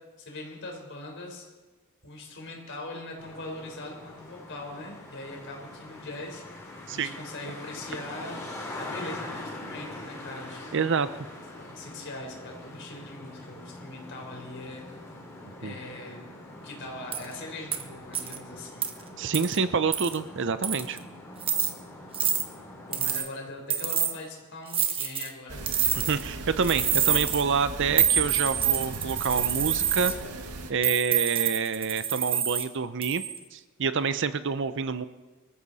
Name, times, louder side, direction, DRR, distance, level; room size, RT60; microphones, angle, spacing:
voice 1, 0.2-1.5 2.0-8.4 8.7-10.9 11.6-14.8 15.4-18.9 22.9-25.7, left 2 dB, 55° left, 0 dB, 4.3 m, -41 dB
Traffic noise roadway noise, 3.2-23.1, left 1 dB, 15° left, 3.4 m, -43 dB
voice 2, 10.7-11.1 15.6-15.8 19.2-21.0 26.1-30.1 30.7-33.2 33.5-35.1, right 5 dB, 55° right, 13 dB, 0.6 m, -27 dB
sound 1, 17.1-17.3 17.7-17.8 18.1-18.4 18.8-18.9 19.3-19.6 19.9-20.2 20.6-21.0 21.4-21.7 22.1-22.4 22.9-23.3 23.7-24.1 24.7-25.3 25.7-26.3 26.6-27.4 28.0-30.1 30.8-32.7 33.0-33.4, right 9 dB, 25° right, 1.0 m, -26 dB
sound 2, 25.5-30.7, right 2 dB, 85° right, 1.7 m, -38 dB
23.5 x 14.0 x 4.1 m, 1.2 s
head